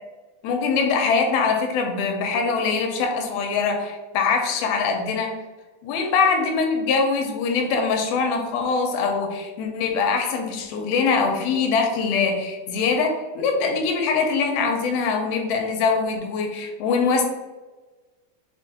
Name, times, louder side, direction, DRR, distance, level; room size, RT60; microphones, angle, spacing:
voice 1, 0.4-5.4 5.8-17.2, left 5 dB, 85° left, 3 dB, 2.6 m, -23 dB
6.2 x 2.1 x 4.1 m, 1.2 s
omnidirectional pair, 4.1 m